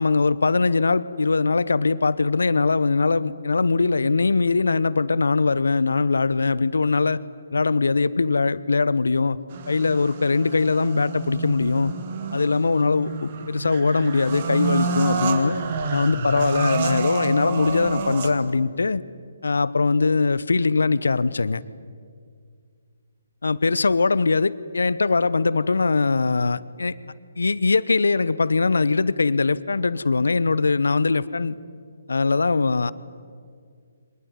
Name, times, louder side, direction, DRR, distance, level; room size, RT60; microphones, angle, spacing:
voice 1, 0.0-7.2 7.5-9.4 9.7-11.9 12.3-15.6 15.9-19.0 19.4-21.6 23.4-27.0 27.4-31.6 32.1-32.9, left 4 dB, 70° left, 18 dB, 1.0 m, -21 dB
sound 1, 9.5-18.6, right 5 dB, 40° right, 2.4 m, -29 dB
24.5 x 20.5 x 9.9 m, 2.1 s
figure-of-eight pair, 140°, 0 cm